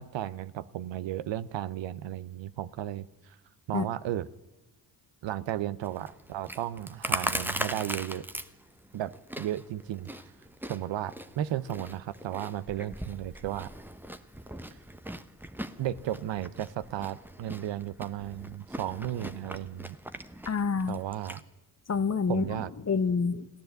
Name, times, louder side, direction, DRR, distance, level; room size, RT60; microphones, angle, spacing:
voice 1, 0.0-3.4 3.7-4.3 5.2-8.2 8.9-10.1 10.7-13.7 15.8-20.0 20.9-21.4 22.3-22.7, right 12 dB, 75° right, 16 dB, 0.7 m, -34 dB
Chewing mastication, 5.8-21.4, right 1 dB, 5° right, 0.8 m, -40 dB
voice 2, 20.5-21.0 21.9-23.5, left 5 dB, 35° left, 12 dB, 1.0 m, -28 dB
16.0 x 10.5 x 7.9 m, 1.1 s
supercardioid pair, 40°, 46 cm